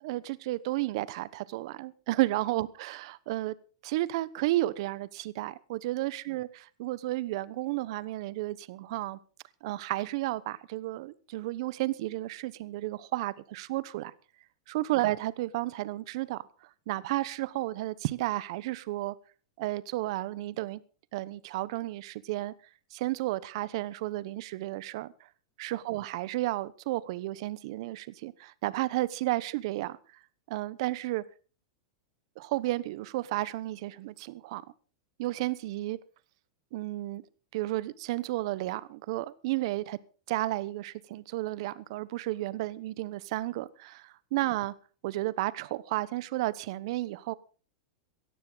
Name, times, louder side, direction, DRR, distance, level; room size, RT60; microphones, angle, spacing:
voice 1, 0.0-3.6 3.8-6.5 6.8-9.2 9.6-14.1 14.7-16.5 16.9-19.1 19.6-20.8 21.1-22.5 22.9-25.1 25.6-30.0 30.5-31.2 32.4-34.6 35.2-36.0 36.7-37.2 37.5-40.0 40.3-44.7 45.0-47.3, right 17 dB, 60° right, 1.0 m, -32 dB
17.5 x 14.0 x 4.0 m
supercardioid pair, 140°, 3 cm